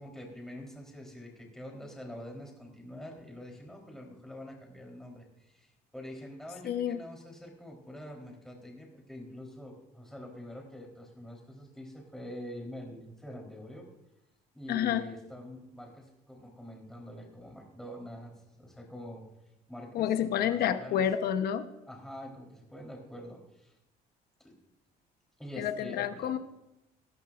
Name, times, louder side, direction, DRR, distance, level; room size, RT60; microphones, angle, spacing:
voice 1, 0.0-13.9 14.5-19.2 19.7-21.0 21.9-23.8 24.4-24.5 25.4-26.3, left 1 dB, ahead, 0 dB, 3.7 m, -45 dB
voice 2, 6.6-7.0 14.7-15.1 19.9-21.7 25.6-26.4, left 9 dB, 70° left, 10 dB, 0.9 m, -29 dB
18.5 x 12.0 x 2.5 m, 0.92 s
cardioid pair, 110°, 17 cm